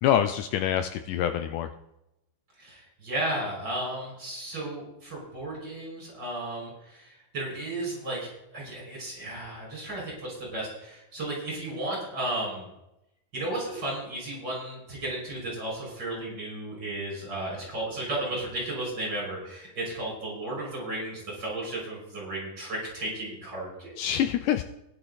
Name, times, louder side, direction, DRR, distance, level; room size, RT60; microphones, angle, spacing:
voice 1, 0.0-1.7 24.0-24.6, left 10 dB, 80° left, 9 dB, 2.0 m, -25 dB
voice 2, 2.6-12.7 13.3-24.0, right 1 dB, 30° right, -3 dB, 6.6 m, -34 dB
16.0 x 11.0 x 4.1 m, 0.88 s
omnidirectional pair, 3.9 m